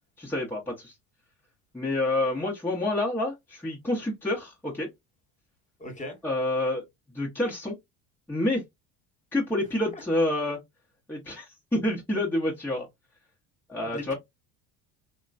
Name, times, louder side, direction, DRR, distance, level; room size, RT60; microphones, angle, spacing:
voice 1, 0.2-0.9 1.7-4.9 6.2-6.9 7.1-7.8 8.3-8.6 9.3-10.6 11.1-12.9 13.7-14.1, left 1 dB, 5° left, 0.9 m, -28 dB
voice 2, 5.8-6.2 9.9-10.0 13.8-14.1, left 2 dB, 25° left, 1.3 m, -38 dB
2.9 x 2.2 x 2.5 m
supercardioid pair, 100°, 32 cm